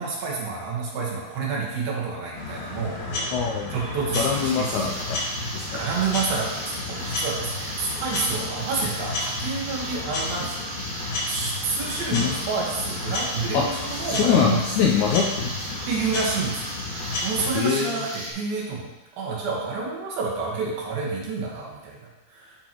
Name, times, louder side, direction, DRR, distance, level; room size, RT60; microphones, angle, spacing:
voice 1, 0.0-4.9 5.7-10.7 11.3-14.6 15.9-16.7 17.2-18.9 19.2-22.6, right 4 dB, 85° right, -3 dB, 3.2 m, -29 dB
sound 1, 2.3-17.5, left 2 dB, 65° left, 2.6 m, -32 dB
voice 2, 3.3-3.7 4.1-5.2 5.5-5.8 12.1-12.3 13.5-15.8 17.5-17.9, left 6 dB, 80° left, -1 dB, 1.7 m, -24 dB
sound 2, 4.3-18.3, right 1 dB, 40° right, 1.5 m, -36 dB
11.0 x 4.4 x 3.0 m, 1.1 s
omnidirectional pair, 4.0 m